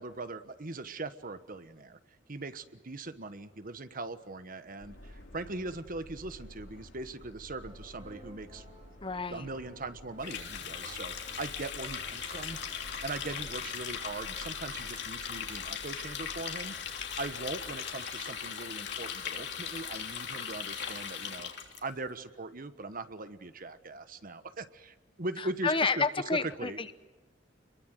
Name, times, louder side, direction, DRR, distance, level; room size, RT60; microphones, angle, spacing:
voice 1, 0.0-2.0 2.3-8.6 9.3-12.6 13.0-21.5 21.8-26.0 26.6-26.9, right 2 dB, 50° right, 11 dB, 1.3 m, -40 dB
Subway metro underground, 4.8-20.9, equal, 80° left, 5.4 m, -52 dB
sound 1, 7.6-13.5, right 1 dB, 35° right, 5.0 m, -56 dB
voice 2, 9.0-9.5 25.4-26.9, left 4 dB, 30° left, 12 dB, 1.0 m, -30 dB
Water tap faucet, 10.2-21.8, left 7 dB, 65° left, 3.2 m, -39 dB
28.0 x 22.5 x 7.9 m, 1.2 s
head